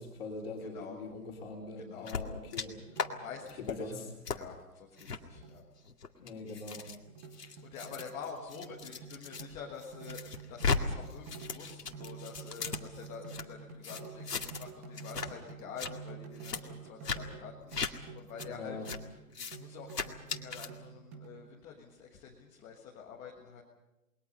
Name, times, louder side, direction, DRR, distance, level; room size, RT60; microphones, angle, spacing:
voice 1, 0.0-2.8 3.6-4.1 6.2-6.9 18.4-18.9, left 3 dB, 40° left, -1 dB, 3.4 m, -42 dB
voice 2, 0.6-1.0 1.8-2.2 3.1-3.9 4.3-5.6 7.3-18.8 19.4-23.6, left 6 dB, 10° left, -2 dB, 1.5 m, -47 dB
sound 1, 2.1-2.7 3.0-3.1 3.5-3.8 4.3-4.4 5.0-5.2 5.9-9.4 9.8-10.8 11.1-13.4 13.8-14.7 15.0-15.3 15.6-15.9 16.4-16.6 17.0-17.2 17.7-17.9 18.4-18.5 18.9-19.0 19.3-19.6 19.9-20.7, left 5 dB, 85° left, 2.3 m, -37 dB
sound 2, 2.8-3.3 3.6-3.9 4.4-4.7 5.0-5.6 6.3-6.4 6.8-21.5, right 5 dB, 10° right, 0.8 m, -49 dB
28.0 x 21.5 x 5.4 m, 0.97 s
hypercardioid pair, 155°, 47 cm